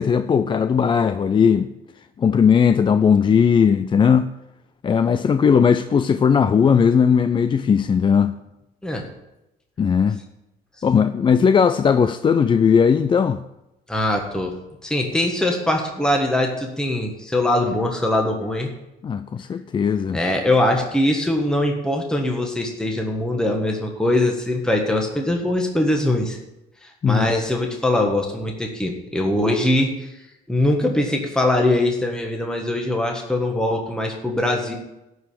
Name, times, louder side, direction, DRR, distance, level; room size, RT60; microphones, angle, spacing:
voice 1, 0.0-1.7 2.2-4.3 4.8-8.3 9.8-10.2 10.8-13.4 19.0-20.2 27.0-27.3, left 6 dB, 30° left, 0.4 m, -17 dB
voice 2, 13.9-14.5 14.8-18.7 20.1-26.4 26.8-30.1 30.5-34.8, left 1 dB, 5° left, 1.4 m, -22 dB
12.0 x 4.9 x 8.5 m
cardioid pair, 110°, 17 cm